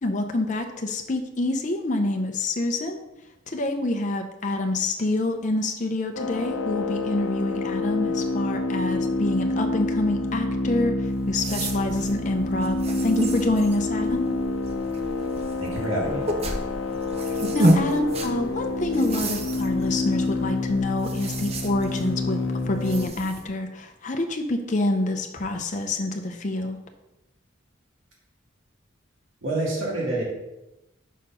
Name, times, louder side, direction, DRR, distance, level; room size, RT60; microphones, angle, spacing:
voice 1, 0.0-3.0 3.5-12.8 13.0-14.3 17.5-22.4 22.7-26.8, left 2 dB, 40° left, 4 dB, 0.6 m, -27 dB
sound 1, 6.1-23.1, left 2 dB, 85° left, 0.7 m, -28 dB
sound 2, 11.0-23.4, right 1 dB, 30° right, 0.6 m, -31 dB
voice 2, 15.6-16.2 29.4-30.2, right 2 dB, 80° right, -3 dB, 2.3 m, -27 dB
5.1 x 4.3 x 5.5 m, 0.93 s
head